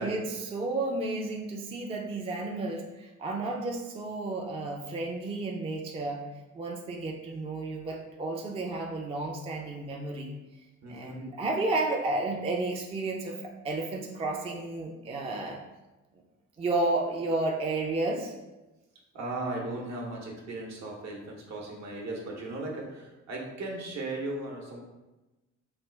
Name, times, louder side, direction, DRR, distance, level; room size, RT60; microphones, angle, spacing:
voice 1, 0.0-6.2 6.5-10.3 10.6-15.6 16.6-18.3, right 2 dB, 20° right, 1 dB, 0.3 m, -32 dB
voice 2, 10.8-11.2 19.1-24.8, right 2 dB, 65° right, -1 dB, 0.9 m, -36 dB
3.2 x 2.2 x 3.2 m, 1.1 s
cardioid pair, 90°, 30 cm